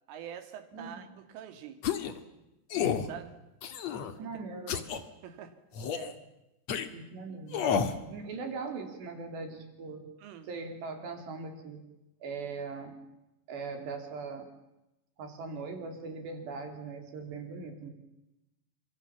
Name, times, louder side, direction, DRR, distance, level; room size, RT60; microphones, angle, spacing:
voice 1, 0.1-1.8 3.1-3.4 4.2-4.4 5.2-5.6 5.9-6.2 10.2-10.5, right 9 dB, 80° right, 9 dB, 5.0 m, -45 dB
voice 2, 0.7-1.2 4.2-4.8 6.9-7.7 8.1-10.0 10.4-11.8 12.2-12.9 13.5-14.5 15.2-17.9, right 4 dB, 60° right, 6 dB, 5.3 m, -40 dB
sound 1, 1.8-2.2 2.7-3.1 3.6-4.1 4.7-5.0 5.7-6.1 6.7-6.9 7.5-8.0, left 7 dB, 60° left, 1.8 m, -30 dB
29.5 x 26.5 x 7.2 m, 0.93 s
omnidirectional pair, 5.7 m